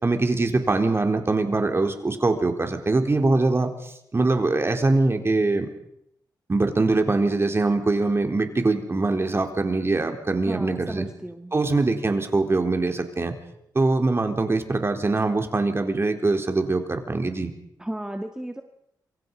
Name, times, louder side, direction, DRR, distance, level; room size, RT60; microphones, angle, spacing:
voice 1, 0.0-5.7 6.5-11.1 11.5-13.4 13.7-17.5, right 3 dB, 35° right, 5 dB, 4.0 m, -23 dB
voice 2, 10.5-11.5 17.8-18.6, right 1 dB, 10° right, 5 dB, 1.9 m, -34 dB
27.5 x 24.0 x 5.5 m, 0.77 s
cardioid pair, 65°, 8 cm